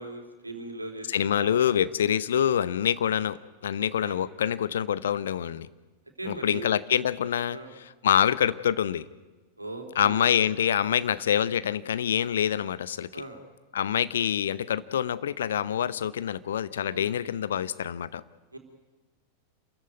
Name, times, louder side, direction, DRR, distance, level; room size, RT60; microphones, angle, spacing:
voice 1, 0.0-1.8 3.7-4.2 6.2-6.7 7.5-7.7 9.6-10.3 13.1-13.4 16.9-17.3 18.5-18.6, right 2 dB, 85° right, 4 dB, 3.1 m, -39 dB
voice 2, 1.1-5.7 6.2-7.6 8.0-9.1 10.0-13.1 13.7-18.2, left 9 dB, 65° left, 16 dB, 0.8 m, -26 dB
27.0 x 14.0 x 9.3 m, 1.2 s
figure-of-eight pair, 90°, 0 cm